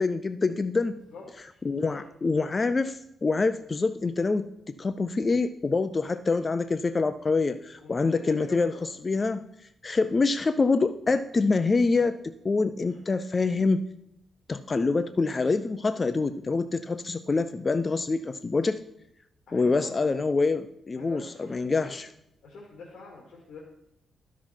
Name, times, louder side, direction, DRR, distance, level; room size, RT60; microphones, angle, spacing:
voice 1, 0.0-1.0 1.6-4.5 4.8-9.4 9.8-13.9 14.5-18.8 19.5-22.1, left 3 dB, 30° left, 11 dB, 0.4 m, -26 dB
voice 2, 1.1-1.6 1.9-2.0 7.8-8.8 12.8-13.0 19.5-20.1 21.0-21.9 22.4-23.6, left 4 dB, 70° left, -3 dB, 2.3 m, -45 dB
12.5 x 6.1 x 4.4 m, 0.79 s
cardioid pair, 105°, 0 cm